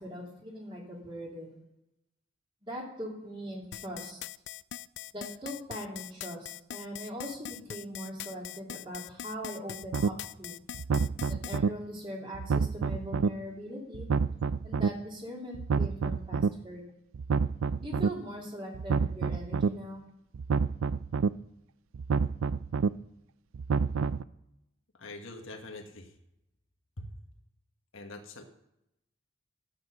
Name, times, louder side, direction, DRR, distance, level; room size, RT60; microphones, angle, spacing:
voice 1, 0.0-1.6 2.6-4.2 5.1-10.5 11.3-14.1 14.6-16.8 17.8-20.0, equal, 25° right, -2 dB, 3.0 m, -41 dB
sound 1, 3.7-11.6, left 12 dB, 55° left, 0.3 m, -42 dB
sound 2, 9.9-10.1 10.7-11.7 12.3-13.3 13.9-14.9 15.5-16.5 17.1-18.1 18.7-19.7 20.3-21.3 21.9-22.9 23.5-24.2, right 5 dB, 85° right, 0.4 m, -28 dB
voice 2, 25.0-26.1 27.0-27.1 27.9-28.4, left 2 dB, 80° left, 3 dB, 1.5 m, -44 dB
12.0 x 8.6 x 5.5 m, 0.84 s
head